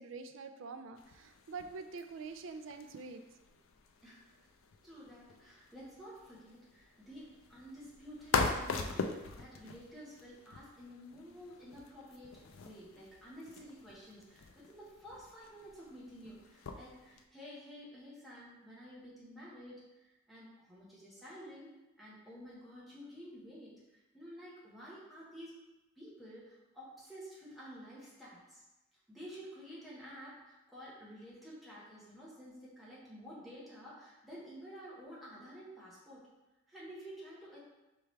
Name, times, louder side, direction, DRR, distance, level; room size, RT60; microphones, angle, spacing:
voice 1, 0.0-3.2, right 4 dB, 75° right, 8 dB, 0.4 m, -45 dB
sound 1, 1.0-17.3, left 4 dB, 90° left, 0.4 m, -42 dB
voice 2, 4.0-4.3 4.8-25.6 26.0-28.6 29.1-36.3 36.7-37.6, equal, ahead, -8 dB, 1.2 m, -51 dB
4.6 x 3.4 x 3.2 m, 1.0 s
head